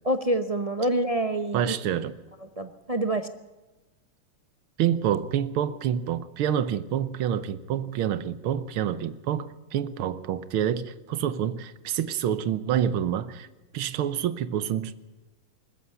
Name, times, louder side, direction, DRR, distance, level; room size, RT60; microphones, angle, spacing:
voice 1, 0.0-1.7 2.6-3.3, right 1 dB, 60° right, 8 dB, 0.3 m, -26 dB
voice 2, 1.5-2.2 4.8-13.5 13.7-14.9, right 9 dB, 85° right, 14 dB, 1.8 m, -27 dB
20.5 x 14.5 x 10.0 m, 1.1 s
omnidirectional pair, 2.3 m